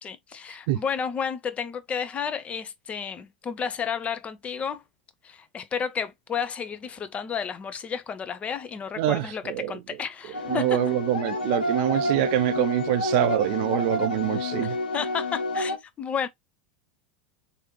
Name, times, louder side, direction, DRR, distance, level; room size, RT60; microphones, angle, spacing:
voice 1, 0.0-4.8 5.2-10.8 14.6-16.3, left 7 dB, 25° left, 0.6 m, -32 dB
voice 2, 9.0-9.7 10.5-14.8, right 14 dB, 55° right, 0.4 m, -25 dB
sound 1, 10.3-15.8, left 1 dB, 75° left, 1.2 m, -29 dB
3.2 x 2.6 x 3.0 m
figure-of-eight pair, 80°, 5 cm